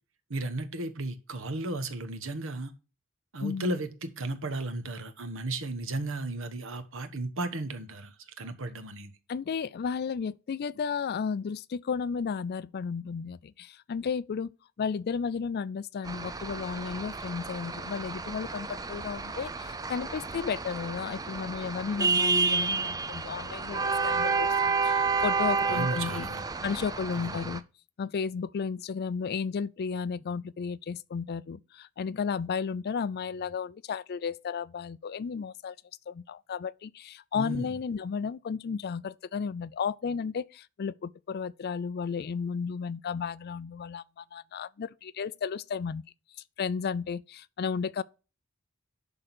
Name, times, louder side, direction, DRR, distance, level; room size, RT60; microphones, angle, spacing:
voice 1, 0.3-2.7 3.3-9.1 25.7-26.4 27.1-27.4 37.3-37.8, right 2 dB, 65° right, 1.2 m, -34 dB
voice 2, 9.3-14.5 14.8-26.3 26.6-27.6 28.0-35.8 36.1-46.0 46.6-48.0, left 6 dB, 50° left, 0.4 m, -33 dB
sound 1, 16.0-27.6, right 4 dB, 15° right, 0.5 m, -30 dB
11.0 x 3.8 x 6.0 m
head